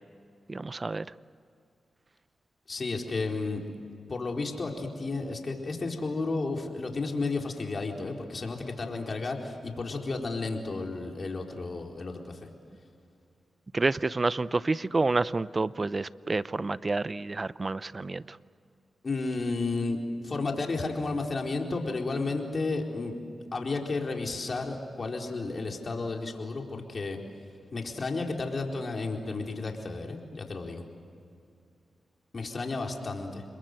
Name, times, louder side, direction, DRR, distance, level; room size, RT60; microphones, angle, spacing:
voice 1, 0.5-1.0 13.7-18.4, right 3 dB, 40° right, 17 dB, 0.7 m, -29 dB
voice 2, 2.7-3.6 4.1-12.5 19.0-23.1 23.5-27.2 27.7-30.8 32.3-33.4, left 3 dB, 50° left, 1 dB, 4.2 m, -32 dB
28.5 x 22.0 x 8.0 m, 2.4 s
cardioid pair, 45°, 0 cm